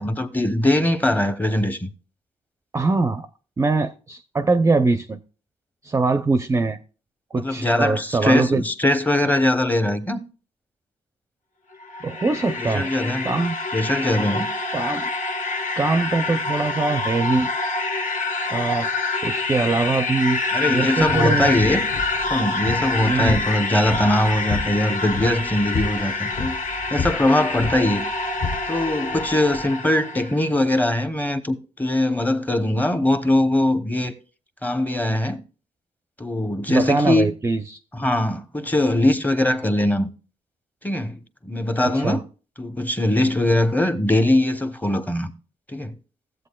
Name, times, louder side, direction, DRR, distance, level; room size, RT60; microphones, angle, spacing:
voice 1, 0.0-1.9 7.3-10.2 12.6-13.3 13.7-14.5 20.5-21.8 22.3-26.5 26.9-28.0 28.7-34.1 34.6-35.4 36.2-37.3 37.9-40.1 40.8-42.2 42.6-45.3 45.7-45.9, left 1 dB, 10° left, 0.8 m, -21 dB
voice 2, 2.7-3.3 3.6-5.2 5.8-6.8 7.3-8.6 12.0-12.9 13.2-13.6 14.7-15.1 15.8-17.5 18.5-20.4 20.7-21.6 23.1-23.4 36.7-37.8 42.0-42.2, right 3 dB, 20° right, 0.5 m, -22 dB
sound 1, 11.7-30.4, left 3 dB, 75° left, 1.3 m, -26 dB
sound 2, 21.0-29.7, left 4 dB, 55° left, 1.1 m, -32 dB
15.5 x 7.9 x 2.2 m
cardioid pair, 125°, 13 cm